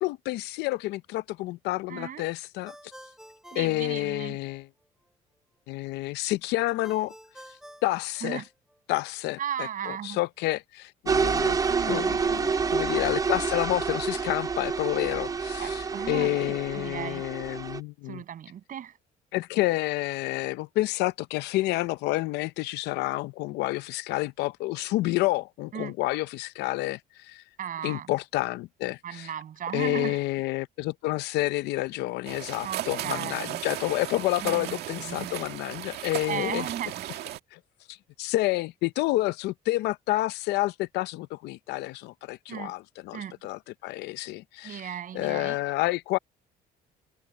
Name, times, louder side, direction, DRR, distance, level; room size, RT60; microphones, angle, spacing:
voice 1, 0.0-2.7 3.6-4.7 5.7-7.1 7.8-8.4 8.9-11.6 11.9-18.2 19.3-27.4 27.8-29.3 29.7-36.7 37.5-37.6 37.9-46.2, left 18 dB, 85° left, 0.7 m, -29 dB
voice 2, 1.9-2.3 3.5-4.4 8.2-8.4 9.4-10.2 11.7-12.2 15.6-16.3 16.7-17.2 18.1-18.9 25.7-25.9 27.6-28.1 29.0-30.2 32.6-33.6 34.4-35.5 36.3-37.0 42.5-42.7 43.1-43.4 44.6-45.6, right 9 dB, 55° right, 6.9 m, -36 dB
Ringtone, 2.6-4.6 6.8-8.8, equal, 5° right, 3.5 m, -50 dB
sound 1, 11.1-17.8, right 5 dB, 20° right, 0.6 m, -28 dB
sound 2, 32.2-37.4, right 13 dB, 75° right, 2.0 m, -36 dB
cardioid pair, 110°, 17 cm